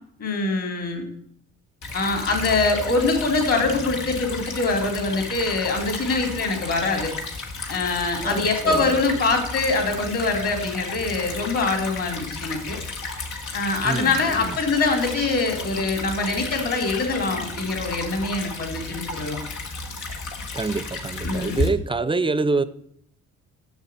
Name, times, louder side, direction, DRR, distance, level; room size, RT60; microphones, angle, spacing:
voice 1, 0.2-1.0 1.9-7.1 7.7-12.8 13.5-19.4 21.2-21.6, left 3 dB, 50° left, 3 dB, 3.7 m, -24 dB
Stream / Trickle dribble, 1.8-21.7, left 3 dB, 75° left, 1.9 m, -33 dB
voice 2, 8.2-9.0 13.8-14.6 20.5-22.6, right 3 dB, 15° right, 15 dB, 0.6 m, -26 dB
7.2 x 6.8 x 8.1 m, 0.71 s
cardioid pair, 90°, 30 cm